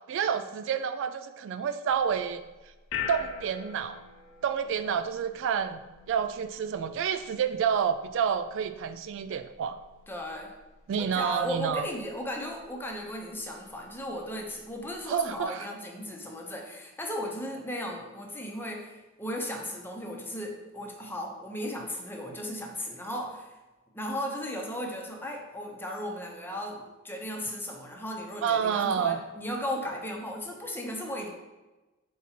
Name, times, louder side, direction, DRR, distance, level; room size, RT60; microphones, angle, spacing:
voice 1, 0.1-2.4 3.1-4.0 4.4-5.8 6.1-9.8 10.9-11.9 15.1-15.7 28.4-29.2, right 7 dB, 60° right, 10 dB, 0.3 m, -29 dB
sound 1, 1.9-15.4, left 7 dB, 65° left, 0.7 m, -45 dB
voice 2, 10.1-10.5 11.0-23.5 23.9-31.3, equal, 10° left, 0 dB, 0.8 m, -36 dB
4.7 x 4.3 x 5.7 m, 1.1 s
head